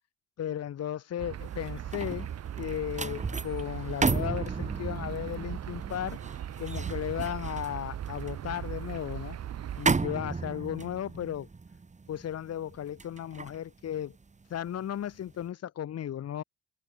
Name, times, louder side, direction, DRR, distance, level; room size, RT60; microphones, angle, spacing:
voice 1, 0.4-2.3 2.6-6.2 6.6-9.4 9.8-11.5 12.1-14.1 14.5-16.4, left 10 dB, 55° left, 1.2 m, -35 dB
sound 1, 1.2-9.9, right 10 dB, 55° right, 1.3 m, -38 dB
sound 2, 1.4-14.8 15.2-15.4, right 4 dB, 25° right, 1.7 m, -35 dB
cardioid pair, 90°, 30 cm